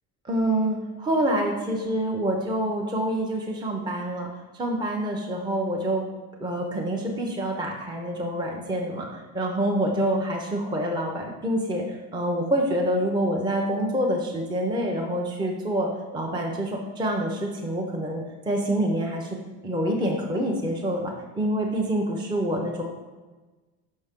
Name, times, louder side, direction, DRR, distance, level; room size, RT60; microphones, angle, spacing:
voice 1, 0.2-4.3 4.5-6.0 6.4-19.4 19.6-22.8, right 1 dB, 15° right, 0 dB, 0.6 m, -27 dB
5.6 x 5.3 x 3.6 m, 1.2 s
cardioid pair, 125°, 35 cm